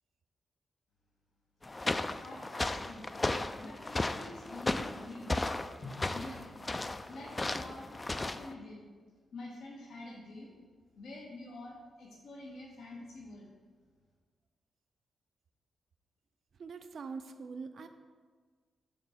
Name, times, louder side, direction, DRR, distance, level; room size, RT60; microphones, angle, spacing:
Footsteps on Mud with Raincoat, 1.6-8.5, left 2 dB, 25° left, 0.3 m, -35 dB
voice 1, 1.8-3.1 3.6-5.3 6.1-6.5 7.1-8.8 9.3-10.5 11.0-13.5, left 2 dB, 85° left, -3 dB, 1.3 m, -47 dB
Drum, 5.8-8.5, left 2 dB, 50° left, 1.3 m, -53 dB
voice 2, 16.6-17.9, right 5 dB, 65° right, 7 dB, 0.4 m, -43 dB
6.8 x 3.9 x 5.7 m, 1.5 s
cardioid pair, 80°, 0 cm